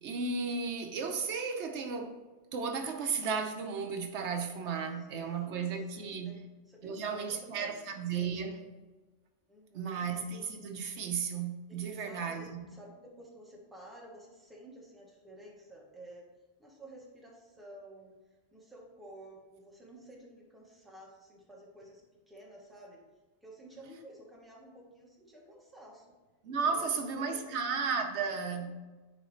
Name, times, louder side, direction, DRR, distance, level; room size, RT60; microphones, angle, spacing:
voice 1, 0.0-2.2 2.5-6.4 6.8-8.6 9.7-12.5 26.4-28.7, right 5 dB, 85° right, 1.0 m, -34 dB
voice 2, 5.0-5.7 5.9-6.4 6.7-7.8 9.5-10.1 11.7-16.3 16.6-18.1 18.5-22.0 22.3-23.0 23.4-26.1 26.8-27.5 28.5-28.7, right 1 dB, ahead, 1.1 m, -52 dB
9.3 x 3.9 x 3.1 m
omnidirectional pair, 1.1 m